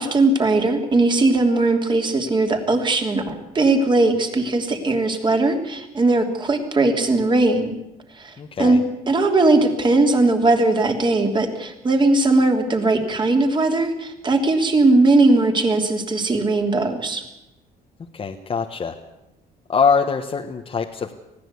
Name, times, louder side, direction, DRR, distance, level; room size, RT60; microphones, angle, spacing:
voice 1, 0.0-7.8 8.2-8.8 9.1-17.2, right 2 dB, 30° right, 4 dB, 3.2 m, -19 dB
voice 2, 8.4-8.8 18.1-19.0 19.7-21.1, left 5 dB, 35° left, 3 dB, 1.3 m, -23 dB
20.0 x 15.5 x 8.4 m, 0.90 s
cardioid pair, 110°, 17 cm